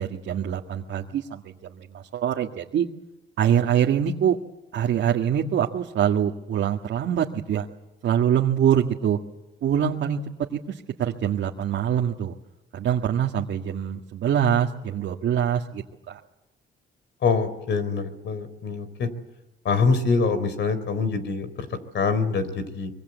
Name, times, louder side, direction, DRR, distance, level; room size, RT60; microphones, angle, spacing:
voice 1, 0.0-2.9 3.4-4.4 4.7-7.7 8.0-9.2 9.6-10.2 10.5-12.4 12.7-16.2, right 9 dB, 70° right, 0 dB, 1.8 m, -24 dB
voice 2, 17.2-19.1 19.6-22.9, left 4 dB, 65° left, 12 dB, 4.0 m, -25 dB
25.0 x 23.5 x 8.1 m, 0.93 s
cardioid pair, 90°, 20 cm